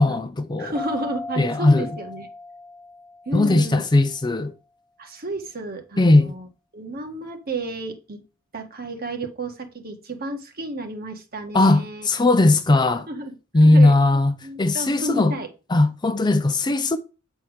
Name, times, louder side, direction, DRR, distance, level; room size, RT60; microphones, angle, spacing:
voice 1, 0.0-0.7 1.4-1.9 3.3-4.5 6.0-6.3 11.5-13.1 13.5-14.3 14.6-15.3 15.7-17.0, left 2 dB, 20° left, 0.5 m, -18 dB
voice 2, 0.6-2.3 3.2-3.8 5.0-6.5 6.7-8.2 8.5-12.1 13.1-13.3 13.6-13.9 14.4-15.5, right 2 dB, 45° right, 1.6 m, -32 dB
sound 1, 0.8-4.1, left 2 dB, 5° left, 0.9 m, -37 dB
8.5 x 4.5 x 4.9 m
head